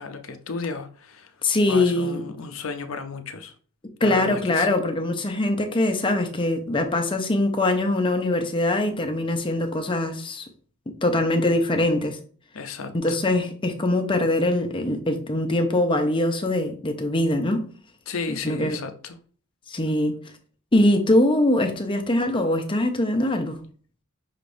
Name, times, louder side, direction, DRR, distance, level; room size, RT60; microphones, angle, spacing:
voice 1, 0.0-1.3 1.7-3.5 4.0-4.7 12.5-13.2 18.1-19.2, left 4 dB, 65° left, 0.6 m, -34 dB
voice 2, 1.4-2.2 4.0-10.4 11.0-12.2 12.9-17.6 18.4-18.8 19.7-20.2 20.7-23.6, left 1 dB, 25° left, 0.6 m, -22 dB
5.7 x 3.4 x 2.6 m
head